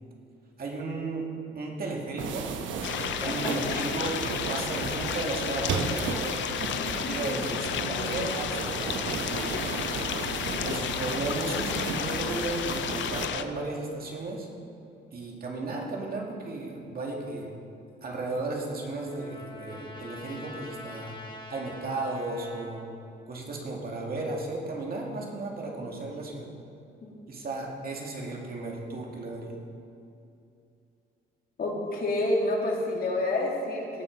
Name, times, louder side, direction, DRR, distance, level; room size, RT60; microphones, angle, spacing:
voice 1, 0.6-1.3 1.5-2.5 3.2-6.4 7.0-9.5 10.5-14.5 15.1-17.5 18.0-21.2 21.5-22.8 23.3-26.5 27.3-29.6, right 2 dB, 50° right, -1 dB, 2.4 m, -34 dB
sound 1, 2.2-13.3, right 5 dB, 75° right, 1.0 m, -34 dB
sound 2, 2.8-13.4, left 10 dB, 70° left, 0.6 m, -32 dB
voice 2, 3.2-3.8 6.7-7.2 7.5-8.1 11.4-11.6 27.0-27.2 31.6-34.0, left 2 dB, 50° left, -1 dB, 2.6 m, -30 dB
Trumpet, 18.2-22.9, left 1 dB, 25° left, 1.8 m, -45 dB
18.0 x 6.1 x 5.3 m, 2.7 s
cardioid pair, 90°, 20 cm